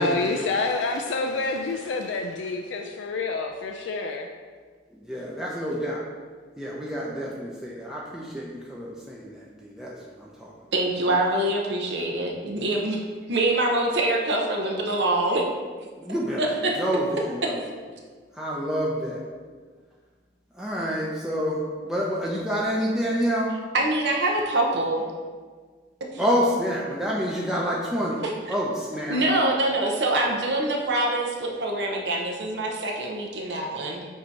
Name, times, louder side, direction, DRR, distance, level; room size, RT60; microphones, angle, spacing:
voice 1, 0.0-4.3, left 3 dB, 80° left, 4 dB, 0.4 m, -28 dB
voice 2, 5.0-6.1 6.6-10.7 16.0-17.7 18.3-19.2 20.6-21.6 21.8-23.5 26.2-28.2 28.5-29.2, equal, 5° right, -5 dB, 0.5 m, -28 dB
voice 3, 10.7-13.0 13.3-15.4 16.1-16.8 17.4-17.5 23.7-25.0 26.1-26.2 28.2-28.5 29.1-34.1, right 1 dB, 65° right, 0 dB, 0.8 m, -25 dB
7.6 x 2.8 x 4.5 m, 1.5 s
head